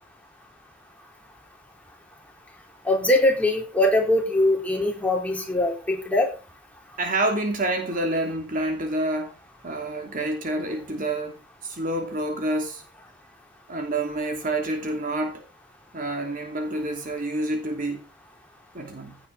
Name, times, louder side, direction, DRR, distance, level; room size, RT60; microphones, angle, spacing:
voice 1, 2.8-6.3, left 1 dB, 10° left, 4.5 m, -22 dB
voice 2, 7.0-9.4 9.6-12.8 13.7-15.4 15.9-18.0 18.7-19.2, right 1 dB, 45° right, 2.9 m, -28 dB
16.5 x 9.8 x 4.1 m
head